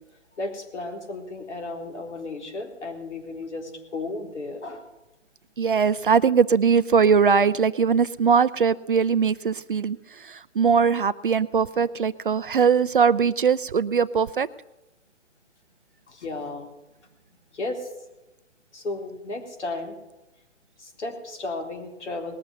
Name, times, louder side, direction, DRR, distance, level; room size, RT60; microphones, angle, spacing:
voice 1, 0.4-4.9 16.1-16.7 17.5-17.9 18.7-19.9 20.8-22.4, left 2 dB, 65° left, 4 dB, 4.0 m, -34 dB
voice 2, 5.6-14.5, right 6 dB, 45° right, 15 dB, 0.4 m, -21 dB
19.5 x 6.9 x 9.7 m, 1.0 s
hypercardioid pair, 160°, 37 cm